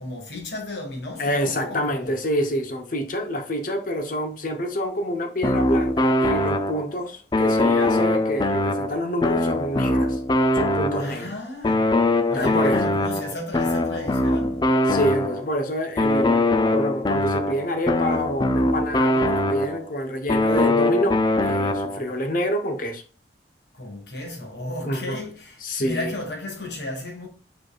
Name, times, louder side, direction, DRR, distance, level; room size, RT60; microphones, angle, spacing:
voice 1, 0.0-2.1 11.0-11.9 12.1-14.6 23.7-27.3, left 1 dB, 65° left, 1.7 m, -34 dB
voice 2, 1.2-10.2 10.5-11.3 12.3-12.8 14.9-23.0 24.8-25.2 25.6-26.1, equal, 45° left, 0.9 m, -27 dB
sound 1, 5.4-7.0 7.3-11.3 11.6-15.5 16.0-19.9 20.3-22.1, left 2 dB, 25° left, 0.4 m, -22 dB
4.9 x 4.6 x 2.3 m
head